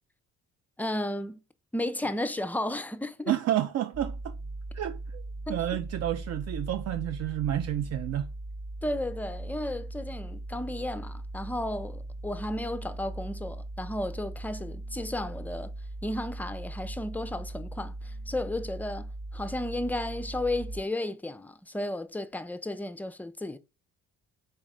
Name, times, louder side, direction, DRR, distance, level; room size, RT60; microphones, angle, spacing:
voice 1, 0.8-1.4 1.7-3.3 5.5-5.8 8.8-15.7 16.0-23.6, left 1 dB, 5° left, 0.4 m, -33 dB
voice 2, 3.3-4.4 4.7-5.2 5.5-8.3, right 12 dB, 60° right, 0.4 m, -30 dB
sound 1, 3.9-20.8, right 2 dB, 35° right, 0.7 m, -39 dB
4.1 x 3.1 x 3.6 m
cardioid pair, 90°, 30 cm